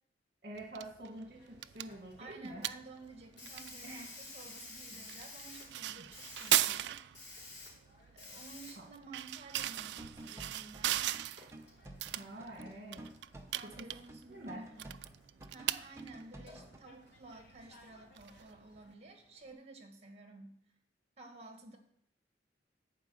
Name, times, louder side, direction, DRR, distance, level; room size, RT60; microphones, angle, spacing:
voice 1, 0.4-2.7 3.8-4.1 6.0-6.1 8.8-8.9 12.1-13.1 13.6-13.9 14.3-14.7, right 1 dB, 55° right, 0 dB, 1.5 m, -47 dB
sound 1, 0.6-18.9, right 13 dB, 75° right, 0.3 m, -39 dB
Hiss, 1.1-19.5, left 2 dB, 70° left, 3.1 m, -55 dB
voice 2, 2.2-6.9 8.1-11.0 13.5-14.9 15.5-20.6 21.2-21.8, right 3 dB, 35° right, 3 dB, 1.9 m, -53 dB
sound 2, 9.6-16.8, right 1 dB, 15° right, 0.8 m, -52 dB
10.5 x 4.8 x 7.7 m, 0.69 s
head